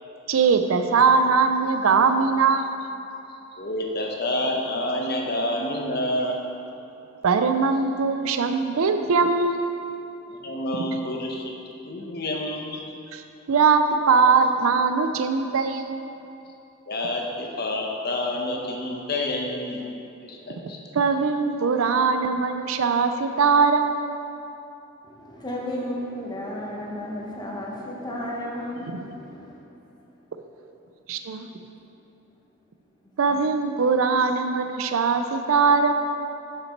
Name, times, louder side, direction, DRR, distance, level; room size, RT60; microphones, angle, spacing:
voice 1, 0.3-2.7 7.2-9.7 13.1-16.0 20.6-20.7 20.9-24.0 28.9-29.0 31.1-31.5 33.2-35.9, right 5 dB, 80° right, 7 dB, 0.5 m, -21 dB
voice 2, 3.3-6.4 10.3-12.8 16.9-19.9 20.2-20.8, left 1 dB, 50° left, 0 dB, 0.9 m, -28 dB
voice 3, 25.0-29.6 33.3-33.4, left 1 dB, 20° left, -3 dB, 1.1 m, -33 dB
6.8 x 5.9 x 4.5 m, 2.9 s
head